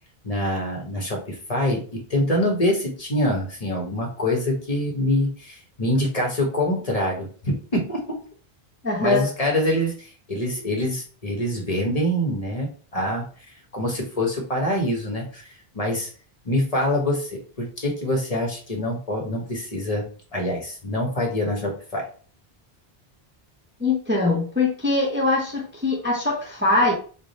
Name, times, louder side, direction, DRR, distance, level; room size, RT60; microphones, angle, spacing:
voice 1, 0.2-8.2 9.0-13.2 13.7-16.1 16.4-20.1 20.3-22.0, left 1 dB, 40° left, 0 dB, 0.9 m, -25 dB
voice 2, 8.8-9.3 23.8-26.9, left 2 dB, 15° right, -1 dB, 0.6 m, -22 dB
3.4 x 2.1 x 3.9 m, 0.41 s
omnidirectional pair, 1.1 m